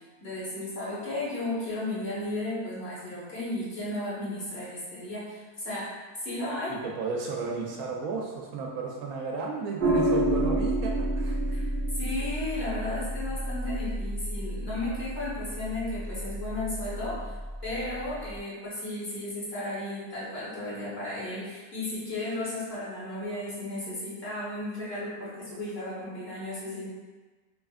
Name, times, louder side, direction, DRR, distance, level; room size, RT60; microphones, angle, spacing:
voice 1, 0.0-5.9 6.2-6.7 11.5-17.3 17.6-26.9, left 1 dB, 45° left, -9 dB, 1.3 m, -34 dB
voice 2, 6.7-11.5, right 4 dB, 75° right, -1 dB, 1.0 m, -33 dB
sound 1, 9.8-18.4, right 1 dB, 55° right, 0.6 m, -30 dB
5.0 x 2.6 x 2.4 m, 1.3 s
omnidirectional pair, 1.6 m